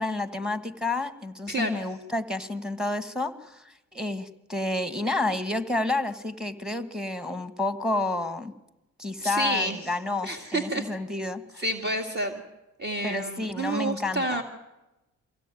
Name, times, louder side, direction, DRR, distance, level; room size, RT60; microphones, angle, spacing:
voice 1, 0.0-8.5 9.0-11.6 13.0-14.4, left 2 dB, ahead, 11 dB, 1.7 m, -30 dB
voice 2, 1.5-1.8 9.2-9.8 10.2-10.9 11.6-12.3 12.8-14.4, right 1 dB, 35° right, 5 dB, 2.2 m, -29 dB
24.0 x 16.5 x 9.2 m, 0.98 s
cardioid pair, 90°, 30 cm